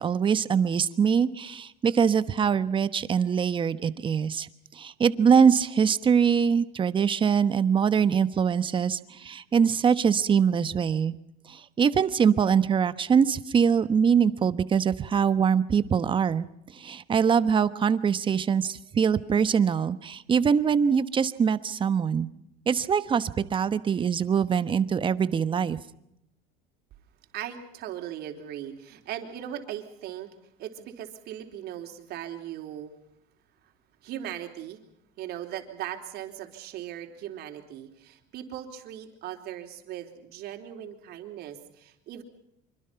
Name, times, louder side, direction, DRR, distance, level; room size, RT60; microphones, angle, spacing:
voice 1, 0.0-11.1 11.5-16.5 16.7-22.3 22.7-25.8, right 7 dB, 25° right, 14 dB, 1.2 m, -23 dB
voice 2, 27.3-30.3 30.6-32.9 33.6-33.7 34.0-34.8 35.2-42.2, right 11 dB, 55° right, 5 dB, 4.0 m, -38 dB
26.0 x 24.5 x 5.9 m, 0.79 s
cardioid pair, 140°, 20 cm